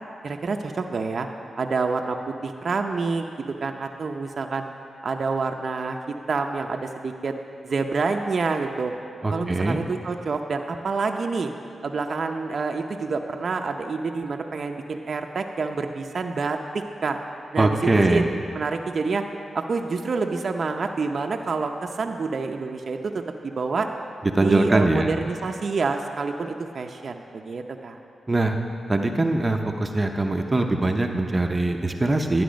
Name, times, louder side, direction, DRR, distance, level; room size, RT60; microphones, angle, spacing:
voice 1, 0.2-1.3 1.6-3.3 3.6-4.6 5.0-6.0 6.3-7.4 7.6-8.9 9.3-11.5 11.8-17.2 17.5-18.2 18.5-19.2 19.5-23.9 24.4-28.0, right 4 dB, 60° right, 3 dB, 0.7 m, -27 dB
voice 2, 9.2-9.8 17.6-18.3 24.3-25.1 28.3-28.6 28.9-32.4, right 2 dB, 30° right, 4 dB, 0.8 m, -22 dB
12.0 x 9.5 x 5.2 m, 2.5 s
cardioid pair, 60°, 0 cm